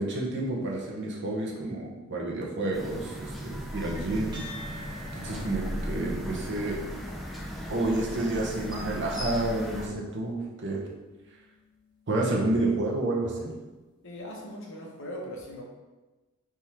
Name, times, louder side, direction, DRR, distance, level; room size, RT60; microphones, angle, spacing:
voice 1, 0.0-4.4 4.7-6.8 7.7-10.9 12.1-13.5, right 2 dB, 55° right, -2 dB, 0.8 m, -30 dB
sound 1, 2.7-9.9, equal, ahead, 0.4 m, -36 dB
sound 2, 4.3-13.0, left 2 dB, 20° right, 1.1 m, -51 dB
voice 2, 5.1-5.5 14.0-15.6, equal, 60° left, -1 dB, 0.9 m, -40 dB
3.6 x 3.0 x 4.3 m, 1.2 s
head